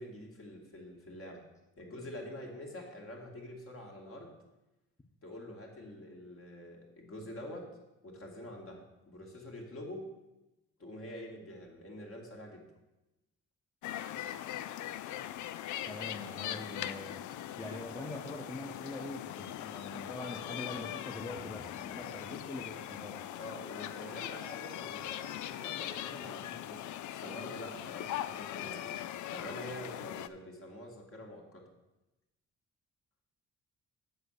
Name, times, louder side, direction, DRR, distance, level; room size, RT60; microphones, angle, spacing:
voice 1, 0.0-1.4 1.8-4.3 5.2-7.7 8.0-8.8 9.1-10.0 10.8-12.7 23.4-28.9 29.3-31.6, left 1 dB, 45° left, 0 dB, 2.4 m, -46 dB
sound 1, 13.8-30.3, left 12 dB, 75° left, 0.5 m, -41 dB
voice 2, 15.9-17.2 17.6-23.2, left 1 dB, 10° left, 1 dB, 1.0 m, -43 dB
7.9 x 5.8 x 6.6 m, 1.0 s
cardioid pair, 90°, 30 cm